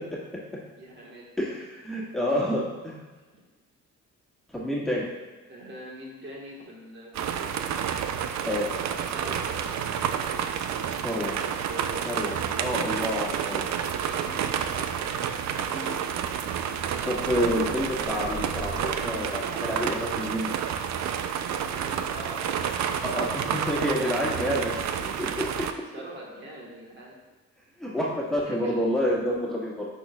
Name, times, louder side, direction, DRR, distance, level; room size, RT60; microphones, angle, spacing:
voice 1, 0.8-1.3 5.5-7.6 8.4-9.8 11.2-11.4 11.7-12.3 13.9-16.0 21.0-22.5 23.9-24.9 25.9-27.2 28.4-28.9, right 1 dB, 40° right, -4 dB, 1.4 m, -43 dB
voice 2, 1.4-3.0 4.5-5.1 8.5-8.7 11.0-11.3 12.1-13.7 17.1-20.5 23.0-24.7 25.2-25.6 27.8-29.9, equal, ahead, -6 dB, 1.7 m, -28 dB
sound 1, 7.1-25.7, right 8 dB, 65° right, 0.5 m, -30 dB
sound 2, 16.6-19.3, left 4 dB, 65° left, 0.7 m, -44 dB
10.5 x 4.4 x 2.3 m, 1.3 s
cardioid pair, 90°, 30 cm